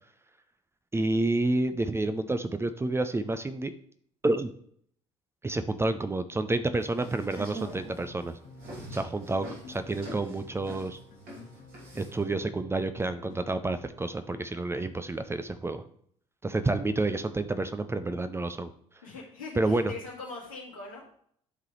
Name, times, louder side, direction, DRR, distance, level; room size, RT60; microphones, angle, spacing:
voice 1, 0.9-3.7 4.2-4.5 5.4-8.4 8.9-11.0 11.9-15.8 16.4-18.7 19.6-19.9, right 2 dB, 15° right, 10 dB, 0.6 m, -29 dB
sound 1, 6.8-12.2, right 2 dB, 60° right, 2.5 m, -44 dB
sound 2, 7.3-13.4, left 2 dB, 50° left, 1.6 m, -50 dB
voice 2, 19.0-21.2, left 3 dB, 80° left, -5 dB, 2.4 m, -42 dB
11.5 x 3.8 x 3.2 m, 0.63 s
figure-of-eight pair, 55°, 17 cm